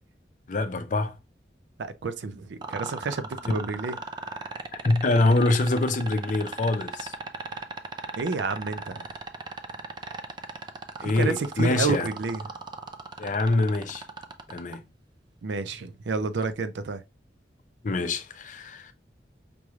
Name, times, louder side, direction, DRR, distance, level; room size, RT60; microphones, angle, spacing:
voice 1, 0.5-1.2 4.8-7.1 11.0-12.1 13.2-14.0 14.5-14.9 17.8-18.9, left 2 dB, 45° left, 0.5 m, -25 dB
voice 2, 1.8-4.0 8.2-9.1 11.0-12.4 15.4-17.0, right 4 dB, 85° right, 0.5 m, -30 dB
sound 1, 2.6-14.8 16.4-16.5, right 4 dB, 25° right, 0.3 m, -36 dB
5.2 x 3.1 x 2.3 m
head